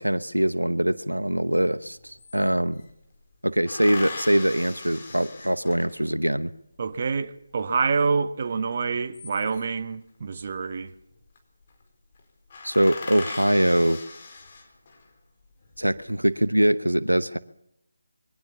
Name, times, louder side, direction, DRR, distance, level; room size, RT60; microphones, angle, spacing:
voice 1, 0.0-2.8 3.4-6.5 12.6-14.0 15.8-17.4, right 1 dB, 85° right, 1.0 m, -23 dB
sound 1, 1.5-1.6 1.9-2.9 3.7-6.2 8.8-9.8 11.0-11.4 11.7-11.8 12.1-12.2 12.5-15.1 15.6-16.3, left 3 dB, 35° left, 4.5 m, -39 dB
voice 2, 6.8-10.9, right 5 dB, 35° right, 1.4 m, -27 dB
23.0 x 17.0 x 7.1 m
figure-of-eight pair, 155°, 0 cm